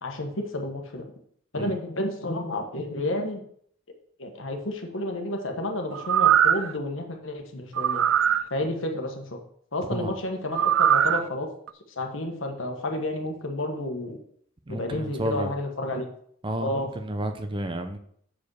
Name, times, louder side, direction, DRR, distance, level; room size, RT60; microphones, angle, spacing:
voice 1, 0.0-1.0 1.5-3.4 4.2-8.0 8.5-9.4 9.7-11.5 11.9-14.2 14.7-16.1 16.6-16.9, left 1 dB, 75° left, 3 dB, 1.5 m, -31 dB
sound 1, 5.9-6.7 7.7-8.4 10.5-11.2 11.7-11.8, right 9 dB, 90° right, 0.4 m, -21 dB
voice 2, 14.7-15.5 16.4-18.0, right 1 dB, 25° right, 7 dB, 0.7 m, -31 dB
7.2 x 5.0 x 6.4 m, 0.64 s
head